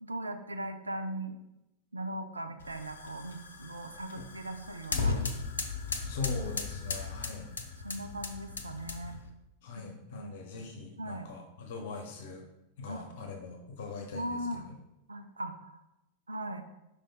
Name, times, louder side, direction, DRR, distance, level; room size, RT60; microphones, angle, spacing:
voice 1, 0.0-1.4 1.9-5.2 7.8-9.1 9.8-10.3 11.0-11.3 12.9-13.1 14.1-14.7 15.1-15.8 16.3-16.6, right 1 dB, 80° right, 8 dB, 0.4 m, -39 dB
sound 1, 2.6-9.3, left 4 dB, 70° left, 0.6 m, -37 dB
voice 2, 6.1-7.5 9.6-12.4 12.8-14.7, left 4 dB, 55° left, 4 dB, 0.9 m, -41 dB
5.3 x 5.0 x 3.7 m, 0.91 s
figure-of-eight pair, 90°, 0 cm